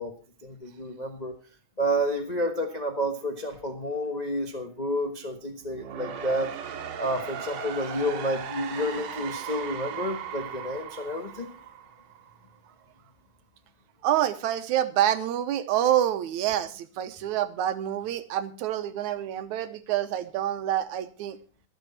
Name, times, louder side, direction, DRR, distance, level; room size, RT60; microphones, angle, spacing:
voice 1, 0.0-1.3 1.8-6.5 7.0-11.5, equal, 55° left, 3 dB, 0.4 m, -30 dB
sound 1, 5.6-12.5, right 8 dB, 65° right, 2.4 m, -38 dB
voice 2, 14.0-21.4, right 11 dB, 80° right, 11 dB, 2.3 m, -27 dB
24.5 x 8.1 x 4.2 m, 0.34 s
omnidirectional pair, 3.4 m